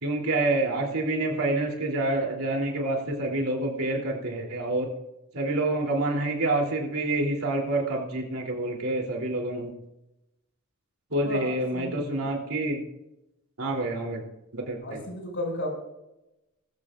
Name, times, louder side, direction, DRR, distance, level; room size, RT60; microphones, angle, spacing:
voice 1, 0.0-4.9 5.3-9.7 11.1-12.8 13.6-14.2 14.5-15.0, right 2 dB, 75° right, 0 dB, 3.4 m, -27 dB
voice 2, 11.2-12.3 14.8-15.7, left 1 dB, 60° left, 0 dB, 6.2 m, -34 dB
21.0 x 14.0 x 2.6 m, 0.92 s
head